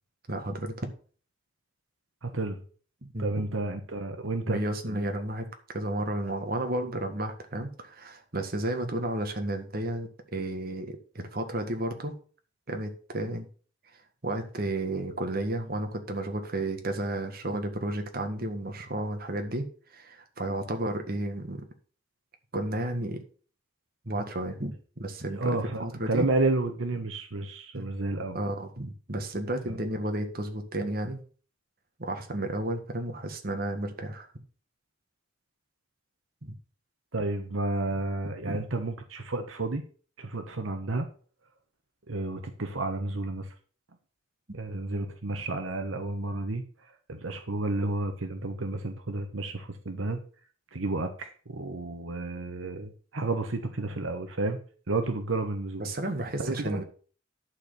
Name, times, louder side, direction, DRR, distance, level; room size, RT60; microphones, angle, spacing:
voice 1, 0.3-0.9 3.1-3.4 4.4-5.5 5.7-12.1 12.7-13.5 14.2-19.7 19.9-21.6 22.5-23.2 24.0-25.5 25.8-26.3 27.7-27.8 28.3-31.2 32.0-34.3 36.4-36.5 38.4-38.6 55.8-56.8, right 1 dB, 50° right, 5 dB, 1.7 m, -32 dB
voice 2, 2.2-2.6 3.2-4.6 4.9-5.0 25.3-28.4 29.7-29.8 37.1-39.8 40.2-41.1 42.1-43.5 44.5-46.6 47.1-50.2 50.7-54.6 54.9-55.8 56.4-56.8, right 2 dB, 80° right, 6 dB, 1.2 m, -31 dB
11.5 x 4.5 x 6.8 m, 0.41 s
head